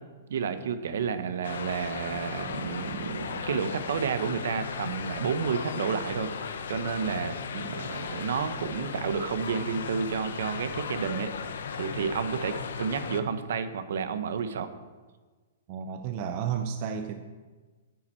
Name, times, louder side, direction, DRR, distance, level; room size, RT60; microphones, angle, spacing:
voice 1, 0.3-6.3 6.7-14.7, right 6 dB, 60° right, 10 dB, 0.8 m, -31 dB
sound 1, 1.4-13.2, left 6 dB, 70° left, 0.8 m, -36 dB
voice 2, 15.7-17.1, right 8 dB, 30° right, 6 dB, 0.5 m, -32 dB
8.9 x 8.8 x 4.4 m, 1.4 s
hypercardioid pair, 180°, 0 cm